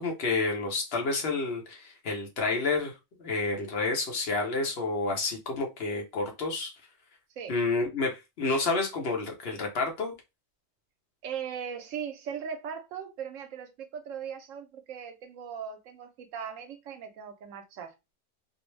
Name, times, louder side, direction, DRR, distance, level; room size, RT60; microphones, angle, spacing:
voice 1, 0.0-2.9 3.2-6.7 7.5-10.1, left 3 dB, 55° left, 0.9 m, -29 dB
voice 2, 11.2-17.9, right 7 dB, 85° right, 1.0 m, -39 dB
2.6 x 2.0 x 3.1 m
omnidirectional pair, 1.3 m